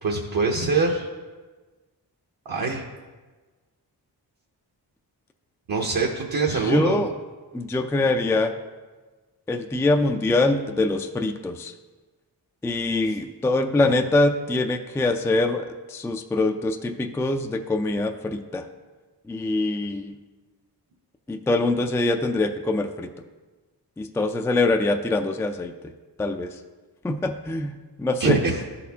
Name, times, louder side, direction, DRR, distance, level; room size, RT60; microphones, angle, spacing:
voice 1, 0.0-1.1 2.4-2.8 5.7-7.0 13.8-13.9 28.2-28.6, right 4 dB, 55° right, -1 dB, 0.9 m, -24 dB
voice 2, 6.5-7.1 7.5-8.5 9.5-11.7 12.6-18.6 19.3-20.2 21.3-23.1 24.0-25.7 26.2-26.5 27.0-28.4, left 2 dB, 5° left, 6 dB, 0.3 m, -24 dB
12.0 x 4.2 x 2.8 m, 1.3 s
cardioid pair, 65°, 41 cm